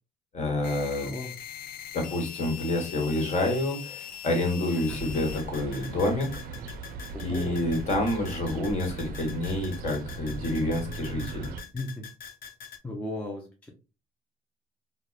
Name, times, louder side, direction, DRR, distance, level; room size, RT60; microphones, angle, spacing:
voice 1, 0.3-1.1 1.9-6.6 7.2-11.5, left 1 dB, 45° left, 2 dB, 1.2 m, -28 dB
sound 1, 0.6-12.8, left 9 dB, 60° left, 0.5 m, -43 dB
voice 2, 1.0-1.4 4.9-5.0 7.1-7.6 11.7-12.1 12.8-13.7, left 1 dB, 10° left, 1 dB, 0.5 m, -36 dB
sound 2, 4.9-11.6, right 4 dB, 60° right, 0.4 m, -39 dB
2.8 x 2.0 x 2.3 m, 0.32 s
cardioid pair, 110°, 17 cm